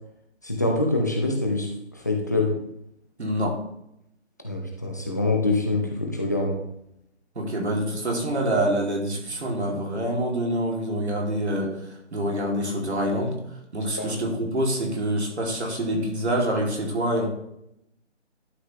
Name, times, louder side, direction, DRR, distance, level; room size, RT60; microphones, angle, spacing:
voice 1, 0.4-2.6 4.4-6.6 14.0-14.2, left 2 dB, 15° left, 0 dB, 0.6 m, -25 dB
voice 2, 3.2-3.6 7.3-13.4 13.7-17.3, right 1 dB, 65° right, 0 dB, 2.8 m, -26 dB
11.5 x 5.4 x 3.2 m, 0.78 s
figure-of-eight pair, 165°, 35 cm